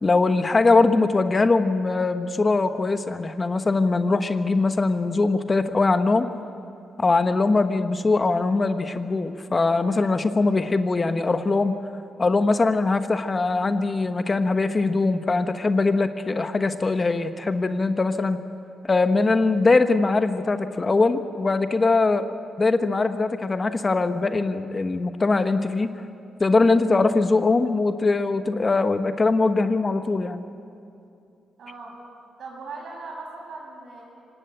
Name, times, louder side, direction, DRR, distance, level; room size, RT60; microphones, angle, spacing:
voice 1, 0.0-6.3 7.0-11.7 12.2-18.4 18.8-22.3 22.6-25.9 26.4-30.4, left 3 dB, 30° left, 9 dB, 1.1 m, -21 dB
voice 2, 31.6-31.9 32.4-34.0, right 3 dB, 70° right, -1 dB, 7.9 m, -38 dB
25.0 x 18.0 x 9.0 m, 2.7 s
cardioid pair, 95°, 0 cm